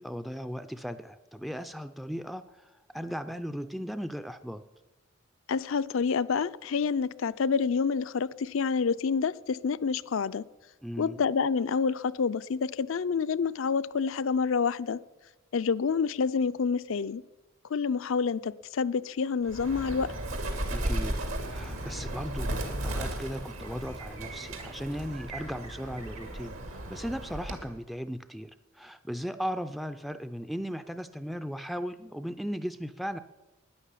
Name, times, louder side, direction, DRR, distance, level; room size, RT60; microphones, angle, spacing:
voice 1, 0.0-4.6 10.8-11.2 20.7-21.2 21.5-22.5 22.8-33.2, equal, ahead, 11 dB, 0.4 m, -37 dB
voice 2, 5.5-10.4 11.0-15.0 15.5-17.2 17.7-20.1, left 5 dB, 65° left, 15 dB, 0.5 m, -28 dB
Bird, 19.5-27.7, right 1 dB, 80° right, 2.2 m, -35 dB
11.5 x 10.0 x 8.4 m, 1.1 s
head